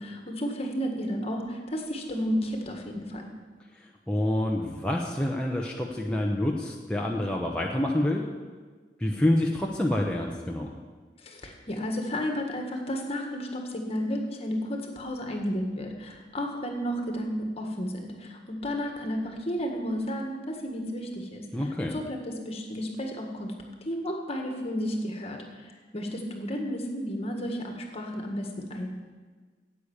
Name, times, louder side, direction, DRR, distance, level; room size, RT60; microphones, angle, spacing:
voice 1, 0.0-3.3 11.2-21.4 21.9-23.5 23.8-28.9, equal, 35° left, 2 dB, 1.8 m, -32 dB
voice 2, 4.1-8.3 9.0-10.7 21.5-21.9, left 1 dB, 5° left, -2 dB, 0.9 m, -27 dB
10.0 x 8.3 x 8.8 m, 1.4 s
head